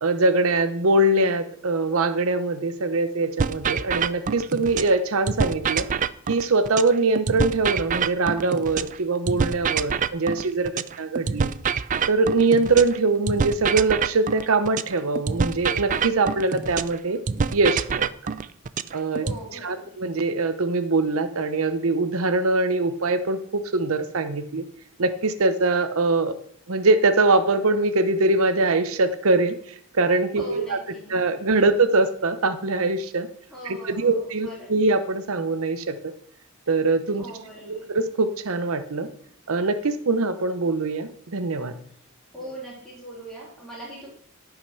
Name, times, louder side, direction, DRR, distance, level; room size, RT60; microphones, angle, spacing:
voice 1, 0.0-5.9 6.3-10.7 11.0-11.5 12.1-17.2 17.5-18.1 18.9-19.3 19.5-24.6 25.0-26.3 26.7-30.8 31.1-33.3 33.6-36.0 36.7-37.3 37.7-39.1 39.5-41.7, right 3 dB, 75° right, 10 dB, 0.8 m, -22 dB
sound 1, 3.4-5.0 5.3-9.0 9.3-13.0 13.3-17.0 17.3-19.4, right 6 dB, 35° right, 0.4 m, -26 dB
voice 2, 19.2-20.0 30.3-31.4 33.5-34.7 37.2-37.9 42.3-44.1, right 1 dB, 5° left, -7 dB, 3.4 m, -40 dB
13.0 x 5.8 x 5.8 m, 0.65 s
head